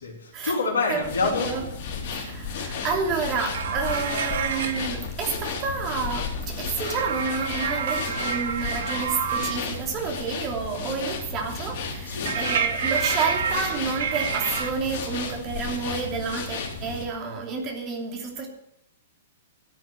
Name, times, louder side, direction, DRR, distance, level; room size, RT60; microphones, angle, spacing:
voice 1, 0.0-1.5 12.1-12.4, left 3 dB, 70° left, -2 dB, 3.7 m, -26 dB
sound 1, 1.0-17.1, left 5 dB, 50° left, 3.7 m, -33 dB
voice 2, 2.1-18.5, right 5 dB, 35° right, 1 dB, 2.9 m, -30 dB
sound 2, 3.3-4.9 6.8-9.6 12.2-14.7, right 7 dB, 60° right, 1.4 m, -28 dB
13.0 x 7.6 x 7.5 m, 0.81 s
figure-of-eight pair, 110°, 0 cm